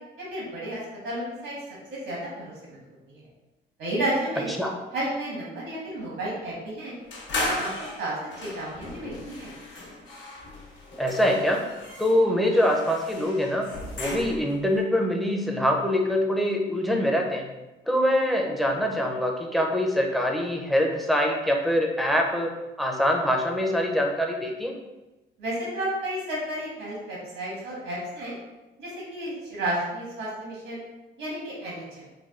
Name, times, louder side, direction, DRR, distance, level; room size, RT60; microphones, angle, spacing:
voice 1, 0.3-1.5 1.9-2.8 3.1-3.2 3.8-4.5 4.9-6.9 7.3-7.7 8.0-9.5 25.4-28.3 28.8-30.8 31.2-32.0, right 1 dB, 85° right, -5 dB, 1.2 m, -32 dB
sound 1, 7.1-14.6, left 2 dB, 65° left, 0.9 m, -36 dB
voice 2, 11.0-11.7 12.0-17.5 17.9-24.8, equal, ahead, 1 dB, 0.4 m, -24 dB
3.3 x 2.2 x 2.4 m, 1.1 s
cardioid pair, 90°, 20 cm